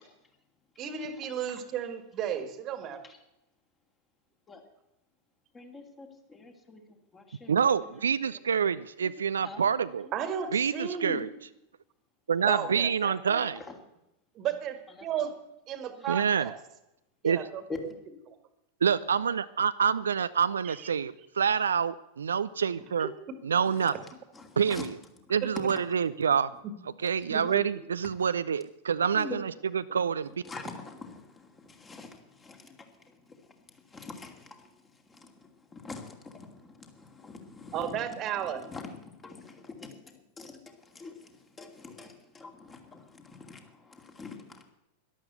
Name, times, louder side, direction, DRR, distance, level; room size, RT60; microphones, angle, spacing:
voice 1, 0.8-3.0 10.1-11.2 12.4-13.5 14.3-15.4 15.7-16.6 17.2-17.6 18.3-18.4 20.6-20.8 23.0-23.1 25.4-25.5 26.6-26.7 27.3-27.6 37.7-38.6, right 8 dB, 35° right, 9 dB, 1.8 m, -34 dB
voice 2, 5.5-7.5 7.8-8.4 9.0-9.1 9.4-9.7 10.0-10.1 13.6-13.7 15.0-15.3 16.0-16.2 23.7-23.9 24.3-24.9 25.8-25.9 27.0-27.4 28.0-28.1 29.1-29.4 30.4-44.6, left 4 dB, 20° left, 4 dB, 2.5 m, -46 dB
voice 3, 7.5-10.1 10.5-11.3 12.3-13.6 16.1-16.5 17.2-17.4 18.8-23.1 23.4-24.0 24.6-24.9 25.3-26.5 27.0-30.3, right 7 dB, 70° right, 14 dB, 0.4 m, -27 dB
12.5 x 11.5 x 8.0 m, 0.89 s
figure-of-eight pair, 90°, 0 cm